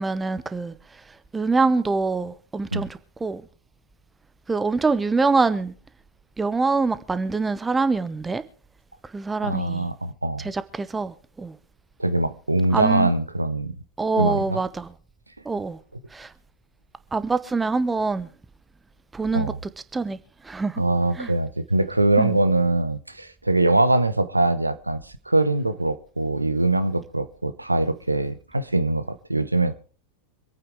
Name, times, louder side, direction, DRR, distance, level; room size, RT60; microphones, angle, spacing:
voice 1, 0.0-3.5 4.5-5.7 6.4-8.4 9.0-9.9 10.4-11.6 12.7-13.1 14.0-14.9 15.4-15.8 16.1-16.3 17.1-18.3 19.1-19.5 19.9-20.8 21.1-21.3 22.2-22.4, right 4 dB, 10° right, 0.9 m, -25 dB
voice 2, 9.4-10.5 12.0-13.7 14.2-14.6 19.3-19.6 20.8-29.7, right 2 dB, 85° right, 0.8 m, -23 dB
25.5 x 9.0 x 3.6 m
figure-of-eight pair, 90°, 0 cm